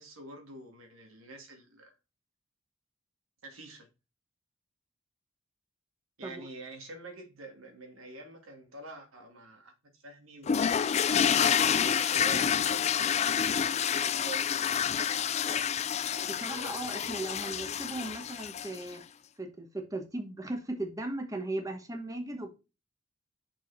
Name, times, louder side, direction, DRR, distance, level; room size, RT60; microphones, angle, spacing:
voice 1, 0.0-2.0 3.4-3.9 6.2-10.9 11.7-13.1 13.5-14.6, right 2 dB, 90° right, 2.3 m, -47 dB
sound 1, 10.5-18.9, left 8 dB, 30° left, 0.3 m, -28 dB
voice 2, 16.2-19.0 19.4-22.5, right 2 dB, 15° right, 1.2 m, -37 dB
6.3 x 5.6 x 4.0 m
head